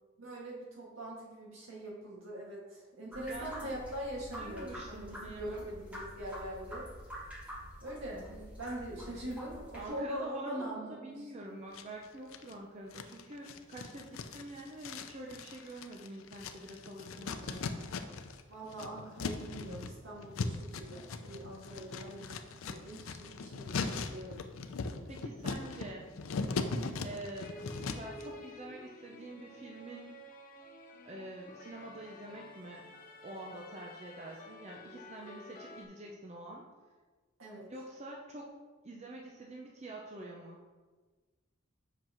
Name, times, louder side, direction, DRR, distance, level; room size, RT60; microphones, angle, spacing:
voice 1, 0.2-6.9 7.8-11.5 18.5-24.4 26.7-27.1 37.4-37.7, right 1 dB, 75° right, -4 dB, 1.9 m, -43 dB
sound 1, 3.1-9.9, equal, 5° right, 1.4 m, -47 dB
voice 2, 3.3-3.8 4.4-5.7 9.8-17.9 25.1-26.1 27.0-30.1 31.1-32.8 33.2-36.6 37.7-38.5 38.8-40.6, right 1 dB, 35° right, -1 dB, 0.6 m, -46 dB
sound 2, 11.7-12.5 12.9-18.4 18.7-28.2, left 4 dB, 90° left, 0.5 m, -39 dB
sound 3, 27.4-35.9, left 2 dB, 45° left, 0.7 m, -51 dB
7.6 x 5.8 x 3.0 m, 1.3 s
head